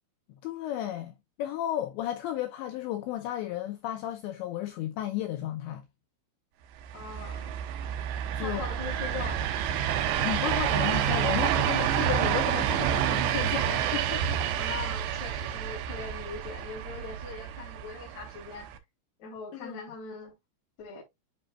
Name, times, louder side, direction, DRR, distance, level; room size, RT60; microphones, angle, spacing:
voice 1, 0.4-5.8 8.3-8.6 10.1-14.4 19.5-19.8, left 12 dB, 80° left, 2.6 m, -34 dB
sound 1, 6.8-18.8, right 10 dB, 75° right, 2.8 m, -29 dB
voice 2, 6.9-7.5 8.4-9.4 14.5-18.7 19.2-20.4 20.8-21.0, left 5 dB, 40° left, 3.4 m, -41 dB
10.0 x 4.4 x 2.3 m
omnidirectional pair, 5.9 m